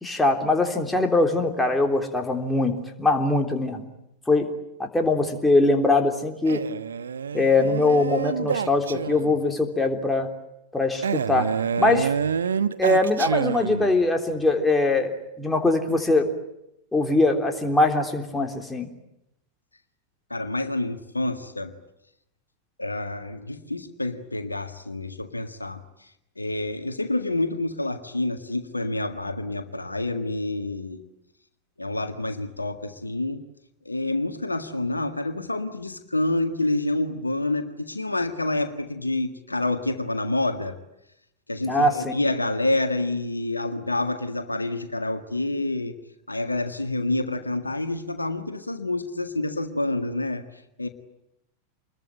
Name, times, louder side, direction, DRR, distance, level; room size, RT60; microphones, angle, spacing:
voice 1, 0.0-3.8 4.3-4.5 4.8-6.6 7.3-10.3 10.7-11.5 11.8-12.1 12.8-16.3 16.9-18.9 41.7-42.1, left 2 dB, 5° left, 3 dB, 3.4 m, -22 dB
Male speech man speaking, 6.5-9.5 11.0-14.0, right 7 dB, 70° right, 1.1 m, -28 dB
voice 2, 20.3-21.7 22.8-26.1 26.4-31.0 31.8-33.4 33.9-40.8 41.5-45.9 46.3-50.9, left 2 dB, 80° left, 8 dB, 1.8 m, -28 dB
27.0 x 21.5 x 9.3 m, 0.83 s
figure-of-eight pair, 90°, 0 cm